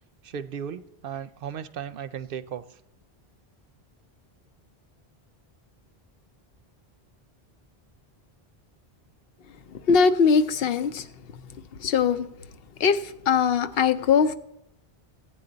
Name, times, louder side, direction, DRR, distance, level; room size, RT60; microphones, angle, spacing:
voice 1, 0.2-2.6, right 8 dB, 65° right, 0.7 m, -35 dB
voice 2, 9.7-11.1 11.8-12.3 12.8-14.3, left 6 dB, 70° left, 0.8 m, -21 dB
16.0 x 9.2 x 3.9 m
omnidirectional pair, 1.0 m